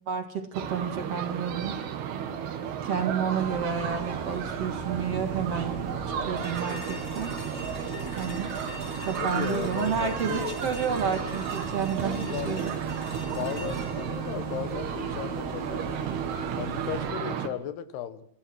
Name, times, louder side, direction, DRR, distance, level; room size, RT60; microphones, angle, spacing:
voice 1, 0.1-1.8 2.8-5.8 6.3-7.3 8.2-8.5 9.1-12.7, right 7 dB, 50° right, 6 dB, 2.2 m, -30 dB
sound 1, 0.5-17.5, right 8 dB, 85° right, 3.9 m, -33 dB
sound 2, 3.4-17.1, left 2 dB, 60° left, 8.0 m, -43 dB
sound 3, 6.4-15.4, left 2 dB, 30° left, 3.9 m, -45 dB
voice 2, 9.2-10.6 12.0-12.7 13.3-15.9 16.6-18.3, left 10 dB, 85° left, 12 dB, 3.4 m, -36 dB
26.0 x 16.0 x 6.3 m, 0.68 s
omnidirectional pair, 4.5 m